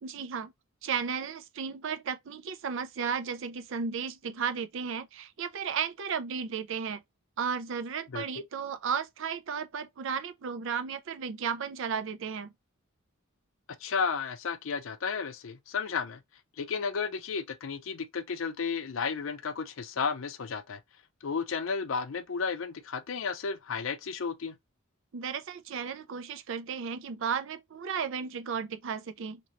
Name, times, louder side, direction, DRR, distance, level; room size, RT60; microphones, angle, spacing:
voice 1, 0.0-0.5 0.8-7.0 7.4-12.5 25.1-29.4, right 6 dB, 65° right, 0.4 m, -34 dB
voice 2, 13.8-16.2 16.6-20.8 21.2-24.6, left 5 dB, 65° left, 0.5 m, -33 dB
3.0 x 2.9 x 2.8 m
head